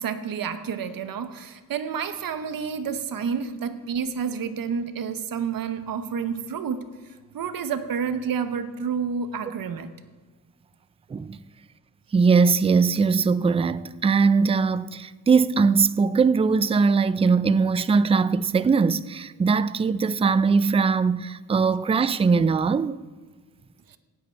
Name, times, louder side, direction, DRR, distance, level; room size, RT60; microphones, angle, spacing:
voice 1, 0.0-6.9 7.3-9.9 23.9-24.0, right 6 dB, 75° right, 1.0 m, -29 dB
voice 2, 12.1-23.0, right 5 dB, 20° right, 0.3 m, -21 dB
17.5 x 8.0 x 4.5 m
wide cardioid pair, 110°, 35 cm